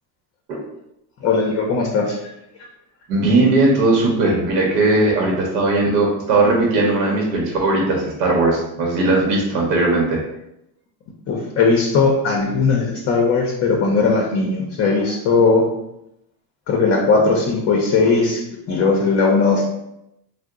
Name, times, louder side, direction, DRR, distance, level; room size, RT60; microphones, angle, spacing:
voice 1, 1.2-2.1 11.3-15.7 16.7-18.4 18.7-19.7, left 4 dB, 35° left, -1 dB, 0.5 m, -18 dB
voice 2, 3.1-10.2, right 2 dB, 90° right, -1 dB, 0.9 m, -18 dB
2.8 x 2.1 x 3.5 m, 0.84 s
supercardioid pair, 120°, 48 cm